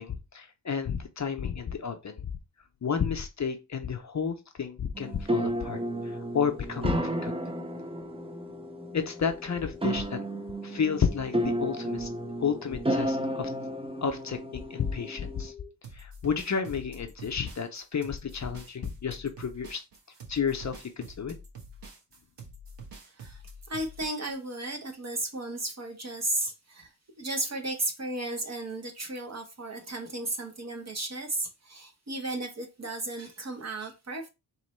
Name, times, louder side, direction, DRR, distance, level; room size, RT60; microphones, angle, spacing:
voice 1, 0.0-2.3 2.8-7.3 8.9-10.2 10.6-12.1 12.4-13.5 14.0-15.5 15.9-19.8 20.3-21.3, left 6 dB, 40° left, 0.6 m, -31 dB
sound 1, 5.0-15.5, right 1 dB, 15° right, 0.5 m, -33 dB
sound 2, 5.7-15.7, left 8 dB, 10° left, 1.0 m, -47 dB
sound 3, 15.8-24.6, right 2 dB, 75° right, 1.2 m, -47 dB
voice 2, 23.1-23.4 23.7-26.9 27.2-34.3, right 2 dB, 40° right, 1.0 m, -34 dB
4.3 x 3.1 x 3.1 m
wide cardioid pair, 125°, 43 cm